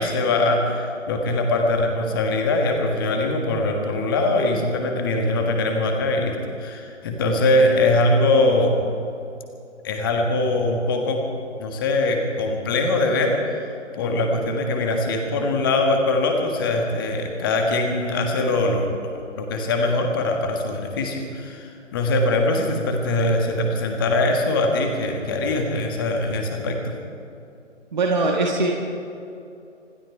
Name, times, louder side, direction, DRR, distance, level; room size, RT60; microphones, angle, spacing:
voice 1, 0.0-8.7 9.8-11.2 11.6-26.9, left 2 dB, 20° left, 3 dB, 1.5 m, -22 dB
voice 2, 27.9-28.7, right 2 dB, 35° right, 0 dB, 1.6 m, -21 dB
26.0 x 11.5 x 4.7 m, 2.7 s
figure-of-eight pair, 150°, 37 cm